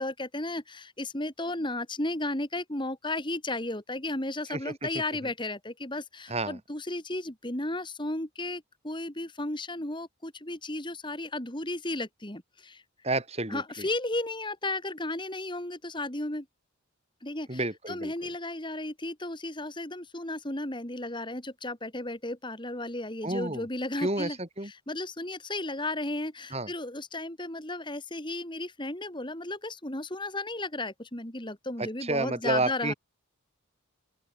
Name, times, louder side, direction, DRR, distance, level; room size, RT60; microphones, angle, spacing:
voice 1, 0.0-12.8 13.5-16.5 17.2-17.6 17.9-24.4 24.6-32.9, left 2 dB, 20° left, 2.7 m, -34 dB
voice 2, 6.3-6.6 13.0-13.9 17.5-18.3 23.2-23.7 24.0-24.7 26.5-26.7 31.8-32.9, right 2 dB, 30° right, 5.1 m, -30 dB
open air
head